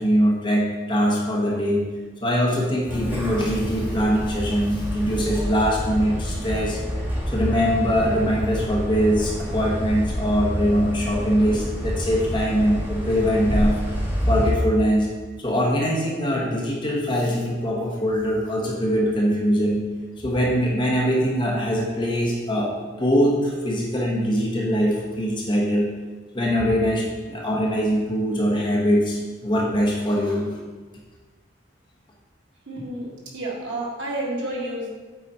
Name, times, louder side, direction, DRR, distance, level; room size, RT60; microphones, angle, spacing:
voice 1, 0.0-1.9 2.2-6.8 7.3-15.1 15.4-19.8 20.2-22.7 23.0-25.9 26.3-30.6, equal, 25° left, -3 dB, 1.1 m, -22 dB
sound 1, 2.9-14.5, equal, 10° right, 1.8 m, -28 dB
voice 2, 32.7-34.9, right 1 dB, 85° right, -4 dB, 2.0 m, -30 dB
8.2 x 4.9 x 4.3 m, 1.4 s
head